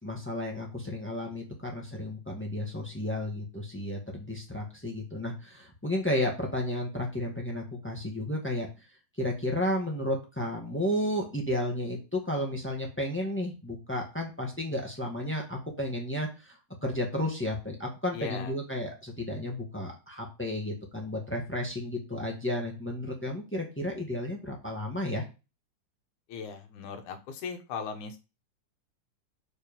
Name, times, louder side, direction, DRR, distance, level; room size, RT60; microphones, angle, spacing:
voice 1, 0.0-8.7 9.2-25.2, left 1 dB, 10° left, 0 dB, 0.8 m, -32 dB
voice 2, 18.1-18.5 26.3-28.2, left 6 dB, 75° left, 6 dB, 2.5 m, -38 dB
6.6 x 4.9 x 5.2 m, 0.29 s
omnidirectional pair, 3.5 m